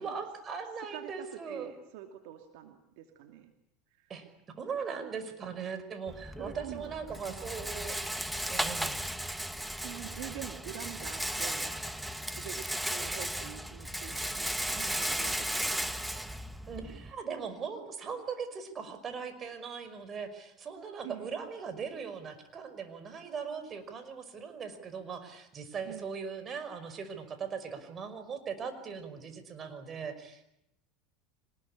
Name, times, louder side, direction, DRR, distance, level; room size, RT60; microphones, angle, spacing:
voice 1, 0.0-1.7 4.1-4.3 4.6-8.0 8.5-9.1 16.6-30.4, right 6 dB, 35° right, 9 dB, 5.5 m, -39 dB
voice 2, 0.9-3.5 4.0-4.1 6.4-7.0 7.2-7.7 9.8-11.7 12.3-16.0 21.0-21.3 25.8-26.1, right 12 dB, 70° right, 6 dB, 2.6 m, -46 dB
Rattle, 6.1-17.1, right 1 dB, 5° right, 1.5 m, -35 dB
25.0 x 20.0 x 10.0 m, 0.80 s
hypercardioid pair, 85°, 0 cm